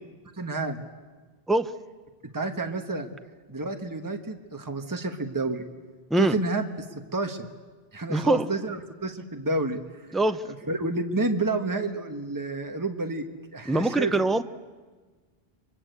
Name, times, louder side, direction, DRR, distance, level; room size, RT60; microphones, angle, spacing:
voice 1, 0.4-0.8 2.3-3.1 3.5-5.7 6.2-6.7 7.1-7.5 7.9-9.8 10.5-13.3 13.5-14.3, right 2 dB, 20° right, 5 dB, 1.5 m, -29 dB
voice 2, 8.1-8.5 10.1-10.4 13.7-14.4, right 2 dB, ahead, 10 dB, 0.7 m, -23 dB
30.0 x 23.5 x 8.2 m, 1.4 s
omnidirectional pair, 1.1 m